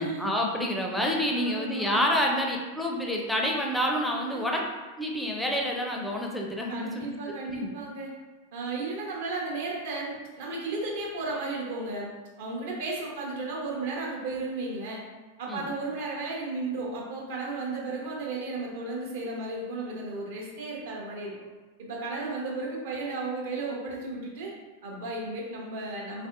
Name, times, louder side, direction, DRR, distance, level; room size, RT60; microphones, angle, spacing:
voice 1, 0.0-4.6 5.0-7.2 7.5-7.7 15.5-15.7, equal, 5° left, -1 dB, 0.4 m, -28 dB
voice 2, 1.3-2.1 4.3-4.6 6.7-8.1 8.5-12.1 12.4-15.0 15.4-21.3 21.8-24.5 24.8-26.3, right 3 dB, 55° right, -2 dB, 0.8 m, -34 dB
3.3 x 2.6 x 2.4 m, 1.2 s
figure-of-eight pair, 90°, 0 cm